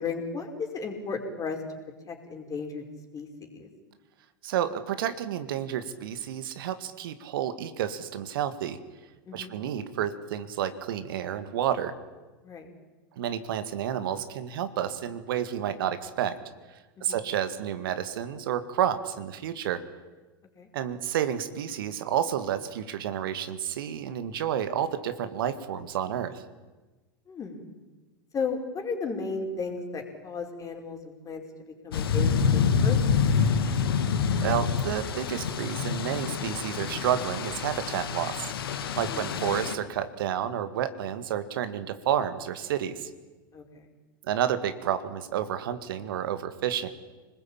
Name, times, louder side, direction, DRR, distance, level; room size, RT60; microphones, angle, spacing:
voice 1, 0.0-1.6 2.1-2.8 3.1-3.7 9.2-9.5 12.4-12.7 17.0-17.2 20.5-20.7 27.3-27.7 28.3-31.4 31.8-33.3 39.0-39.3 43.5-43.9, left 4 dB, 25° left, 3 dB, 5.0 m, -35 dB
voice 2, 4.4-8.8 9.3-11.9 13.2-16.4 17.0-19.8 20.7-26.4 34.4-38.5 39.0-43.1 44.2-46.9, right 10 dB, 65° right, 10 dB, 1.9 m, -30 dB
sound 1, 31.9-39.8, left 6 dB, 75° left, 2.1 m, -27 dB
26.5 x 20.0 x 8.9 m, 1.2 s
hypercardioid pair, 95°, 12 cm